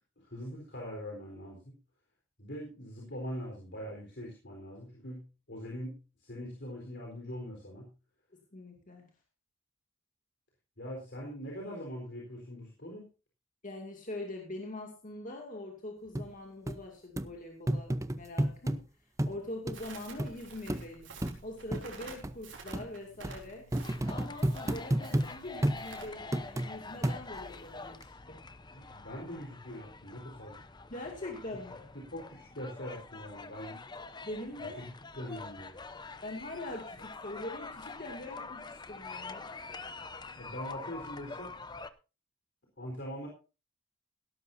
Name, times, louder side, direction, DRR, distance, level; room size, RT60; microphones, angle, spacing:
voice 1, 0.2-1.7 2.4-7.9 10.8-13.0 28.7-30.6 31.9-33.8 34.6-34.7 35.2-35.7 40.4-41.5 42.8-43.3, equal, 60° left, -1 dB, 4.1 m, -42 dB
voice 2, 8.5-9.1 13.6-18.8 19.2-21.1 21.4-23.7 24.1-28.4 28.8-28.9 30.9-31.8 34.2-34.8 36.2-39.4, left 1 dB, 40° left, 1 dB, 2.3 m, -43 dB
sound 1, 16.2-16.3 16.7-16.8 17.2-17.3 17.7-18.8 19.2-19.4 19.7-19.8 20.2-20.3 20.7-20.8 21.2-21.4 21.7-21.8 22.2-22.3 22.7-22.9 23.2-23.4 23.7-25.3 25.6-25.8 26.3-26.7 27.0-27.5 28.0-28.1, right 1 dB, 15° right, 0.6 m, -30 dB
Crackle, 19.7-26.1, right 4 dB, 65° right, 4.2 m, -50 dB
sound 2, 23.8-41.9, left 3 dB, 20° left, 0.7 m, -46 dB
17.0 x 12.5 x 2.7 m, 0.32 s
head